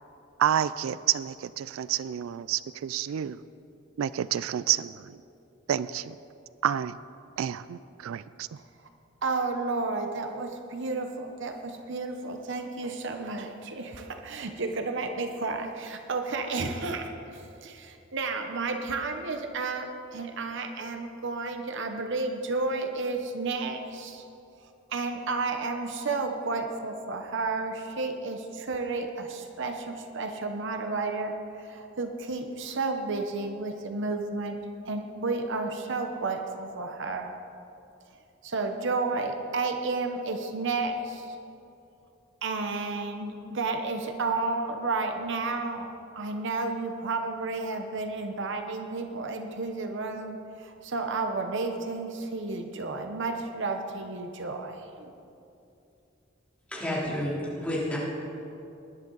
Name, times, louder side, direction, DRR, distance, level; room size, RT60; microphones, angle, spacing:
voice 1, 0.4-3.4 4.0-4.9 5.7-6.1 6.6-7.0 7.4-8.5, right 10 dB, 90° right, 17 dB, 0.3 m, -29 dB
voice 2, 9.2-24.2 24.9-34.6 34.9-37.4 38.4-41.4 42.4-55.1, right 3 dB, 65° right, 5 dB, 0.9 m, -32 dB
voice 3, 56.7-58.0, left 1 dB, 5° left, -7 dB, 3.5 m, -30 dB
20.0 x 11.0 x 3.9 m, 2.7 s
head